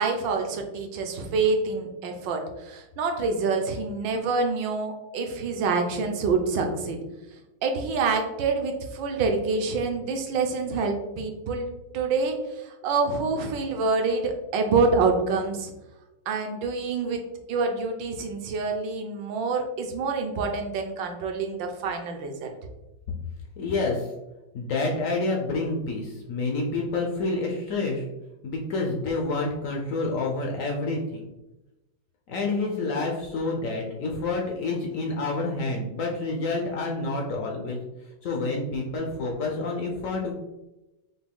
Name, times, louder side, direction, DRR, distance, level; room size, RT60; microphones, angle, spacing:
voice 1, 0.0-7.0 7.6-11.7 11.9-15.7 16.3-17.2 17.5-22.5, right 4 dB, 70° right, 4 dB, 1.3 m, -26 dB
voice 2, 23.6-24.1 24.5-28.0 28.4-31.3 32.3-37.8 38.2-40.3, left 3 dB, 85° left, 0 dB, 0.7 m, -28 dB
5.9 x 2.3 x 3.5 m, 0.98 s
omnidirectional pair, 2.2 m